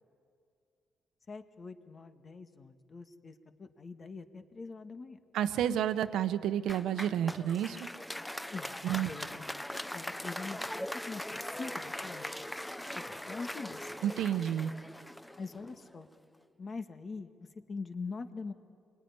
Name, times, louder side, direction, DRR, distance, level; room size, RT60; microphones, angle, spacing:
voice 1, 1.3-5.2 8.5-9.4 9.7-12.3 13.0-13.8 15.4-16.1 16.6-18.5, left 4 dB, 40° left, 7 dB, 1.9 m, -43 dB
voice 2, 5.3-7.8 8.8-9.1 14.0-14.7, right 10 dB, 80° right, 11 dB, 1.1 m, -30 dB
Applause, 6.7-16.0, left 1 dB, 5° left, 0.8 m, -41 dB
26.0 x 21.5 x 9.8 m, 2.3 s
cardioid pair, 90°, 0 cm